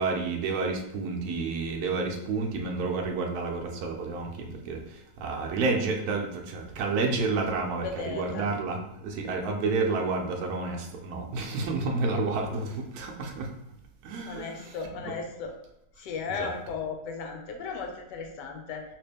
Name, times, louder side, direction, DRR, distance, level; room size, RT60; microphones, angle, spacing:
voice 1, 0.0-13.5 14.0-15.1 16.4-16.5, right 3 dB, 70° right, 2 dB, 1.0 m, -30 dB
voice 2, 7.8-8.5 14.3-15.5 16.0-18.8, left 5 dB, 90° left, 3 dB, 1.2 m, -36 dB
2.9 x 2.9 x 3.3 m, 0.80 s
omnidirectional pair, 1.8 m